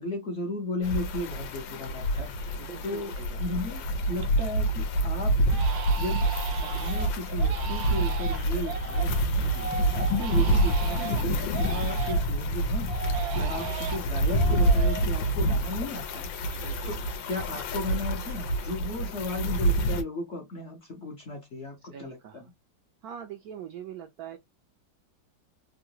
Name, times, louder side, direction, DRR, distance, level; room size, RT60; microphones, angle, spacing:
voice 1, 0.0-2.6 2.8-3.1 3.4-5.6 6.0-9.4 9.9-12.9 13.3-13.6 13.9-16.3 16.9-17.0 17.3-22.4, left 2 dB, 55° left, 0.8 m, -35 dB
sound 1, 0.8-20.0, right 1 dB, 85° left, 1.4 m, -27 dB
Crying sobbing, 2.3-2.4 2.9-3.3 3.7-4.6 4.9-5.0 5.5-12.4 12.9-16.2 16.5-18.0 18.2-18.8, right 7 dB, 90° right, 1.4 m, -38 dB
voice 2, 2.6-3.5 9.4-9.7 13.3-13.7 16.5-17.1 21.9-22.5 23.0-24.4, right 9 dB, 75° right, 0.9 m, -43 dB
3.7 x 2.1 x 2.7 m
omnidirectional pair, 2.0 m